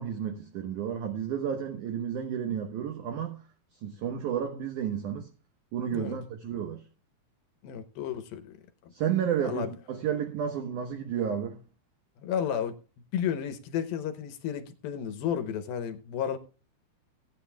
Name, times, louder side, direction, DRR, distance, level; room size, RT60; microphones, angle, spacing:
voice 1, 0.0-3.4 3.8-5.3 5.7-6.8 8.9-11.6, right 8 dB, 70° right, 2.0 m, -31 dB
voice 2, 7.6-8.6 9.4-9.7 12.2-12.8 13.1-16.4, left 8 dB, 75° left, 2.5 m, -32 dB
19.0 x 9.4 x 2.3 m
omnidirectional pair, 4.8 m